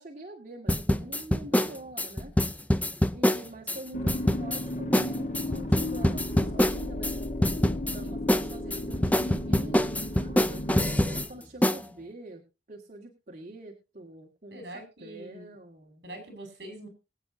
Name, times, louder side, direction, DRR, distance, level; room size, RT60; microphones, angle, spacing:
voice 1, 0.0-2.3 3.1-4.1 4.4-7.1 7.8-12.4 12.7-16.0, right 2 dB, 45° right, -1 dB, 2.0 m, -45 dB
sound 1, 0.7-3.8 4.1-4.6 4.9-5.1 5.3-7.1 7.4-8.0 8.3-11.3 11.6-11.8, left 1 dB, 10° left, 0.5 m, -24 dB
sound 2, 3.9-11.2, left 1 dB, 45° left, 1.4 m, -34 dB
voice 2, 14.5-15.5 16.0-16.9, right 1 dB, 65° right, 7 dB, 5.1 m, -43 dB
24.0 x 8.3 x 2.7 m, 0.29 s
head